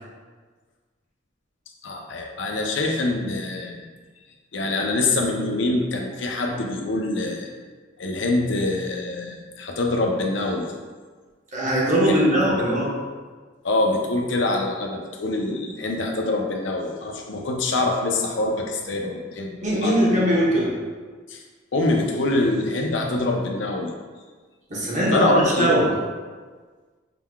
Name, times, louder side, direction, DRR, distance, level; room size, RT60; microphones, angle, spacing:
voice 1, 1.8-3.7 4.5-7.5 8.0-10.7 12.1-12.6 13.6-20.1 21.3-21.4 21.7-23.9 25.1-25.7, left 2 dB, 65° left, 2 dB, 0.6 m, -25 dB
voice 2, 11.5-13.0 19.6-20.7 24.7-25.9, right 1 dB, 35° right, -5 dB, 1.0 m, -20 dB
5.8 x 3.7 x 2.3 m, 1.4 s
head